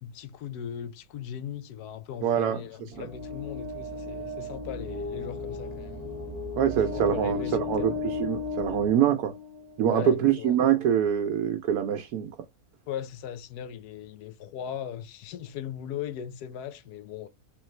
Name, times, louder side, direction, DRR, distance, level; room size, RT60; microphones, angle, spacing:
voice 1, 0.0-6.1 6.9-8.0 9.9-10.6 12.9-17.3, left 9 dB, 90° left, 1.2 m, -38 dB
voice 2, 2.2-3.0 6.6-9.3 9.8-12.3, right 9 dB, 80° right, 1.1 m, -25 dB
sound 1, 2.9-9.9, left 3 dB, 30° right, 1.1 m, -35 dB
3.5 x 3.1 x 3.1 m
omnidirectional pair, 1.6 m